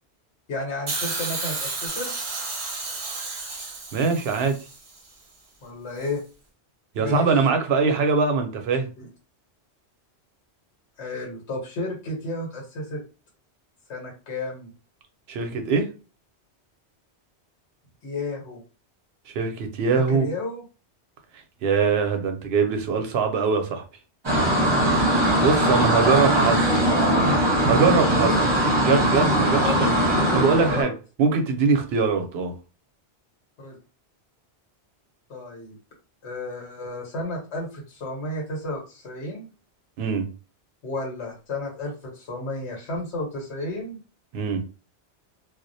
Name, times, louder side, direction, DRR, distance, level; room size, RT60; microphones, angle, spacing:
voice 1, 0.5-2.1 5.6-6.2 7.0-7.3 9.0-9.1 11.0-13.0 13.9-14.7 18.0-18.6 20.1-20.6 26.2-27.4 29.4-30.9 33.6-33.8 35.3-35.7 36.2-39.5 40.8-44.0, left 2 dB, 85° left, 1.2 m, -32 dB
Hiss, 0.9-5.0 6.0-6.1, right 3 dB, 45° right, 0.4 m, -32 dB
voice 2, 3.9-4.6 6.9-8.9 15.3-15.9 19.3-20.3 21.6-23.8 25.4-26.8 27.7-28.4 28.8-29.9 30.3-30.9 31.2-32.5 40.0-40.3 44.3-44.6, right 5 dB, 70° right, 0.8 m, -22 dB
sound 1, 24.2-30.8, right 1 dB, 25° right, 0.8 m, -20 dB
2.3 x 2.0 x 2.6 m
omnidirectional pair, 1.1 m